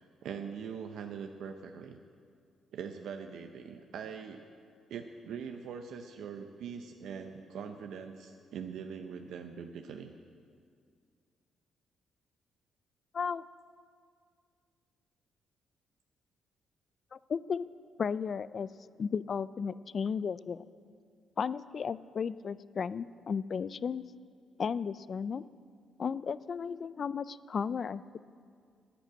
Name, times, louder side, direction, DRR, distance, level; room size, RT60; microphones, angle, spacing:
voice 1, 0.0-2.0 2.7-4.5 4.9-10.1, right 7 dB, 75° right, 5 dB, 0.7 m, -42 dB
voice 2, 17.1-17.7 18.0-18.7 19.0-20.6 21.4-24.0 24.6-25.4 26.0-28.2, left 6 dB, 45° left, 18 dB, 0.3 m, -34 dB
11.5 x 9.1 x 8.6 m, 2.2 s
cardioid pair, 90°, 0 cm